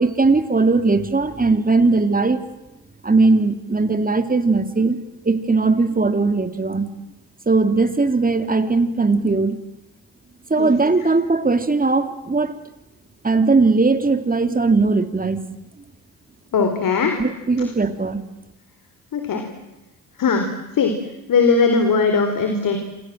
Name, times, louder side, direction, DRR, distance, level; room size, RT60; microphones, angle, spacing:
voice 1, 0.0-2.4 3.0-5.0 5.2-6.9 7.5-9.6 10.5-12.6 13.2-15.4 17.2-18.2, right 3 dB, 25° right, 9 dB, 3.1 m, -19 dB
voice 2, 10.6-11.1 16.5-17.2 19.1-19.5 20.2-20.5 20.7-20.9 21.3-22.8, left 5 dB, 60° left, 6 dB, 4.2 m, -19 dB
27.5 x 27.5 x 7.7 m, 0.96 s
supercardioid pair, 60°, 37 cm